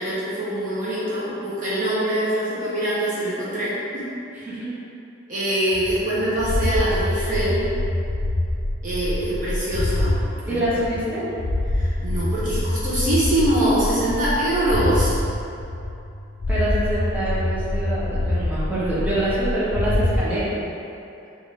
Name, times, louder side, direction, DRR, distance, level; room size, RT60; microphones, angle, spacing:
voice 1, 0.0-4.1 5.3-7.7 8.8-10.2 10.4-10.6 11.7-15.1, right 1 dB, 40° right, -9 dB, 0.7 m, -24 dB
voice 2, 4.3-4.7 10.5-11.2 16.5-20.6, right 1 dB, 10° right, -11 dB, 0.9 m, -25 dB
sound 1, 5.7-10.2 10.6-15.2 15.6-16.1 16.4-20.2, left 1 dB, 35° left, 0.3 m, -25 dB
3.3 x 2.5 x 4.0 m, 2.7 s
head